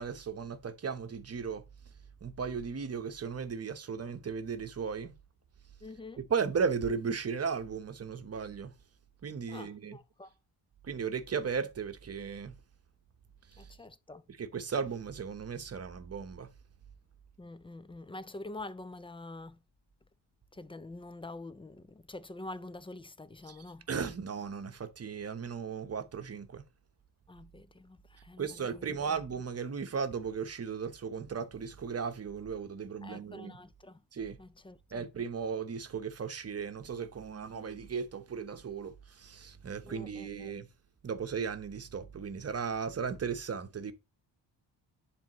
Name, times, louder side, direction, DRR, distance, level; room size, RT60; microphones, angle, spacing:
voice 1, 0.0-1.6 2.2-5.1 6.2-8.7 9.2-10.0 10.8-12.5 14.4-16.5 23.5-23.6 23.9-26.6 28.4-33.6 34.1-34.4 34.9-40.7 41.0-43.9, right 6 dB, 30° right, 0.9 m, -36 dB
voice 2, 5.8-6.2 9.5-10.3 13.6-14.2 17.4-19.6 20.5-23.9 27.3-29.2 33.0-34.0 34.4-35.0 39.8-40.5, left 2 dB, 15° left, 0.3 m, -46 dB
10.5 x 3.5 x 3.0 m
cardioid pair, 90°, 47 cm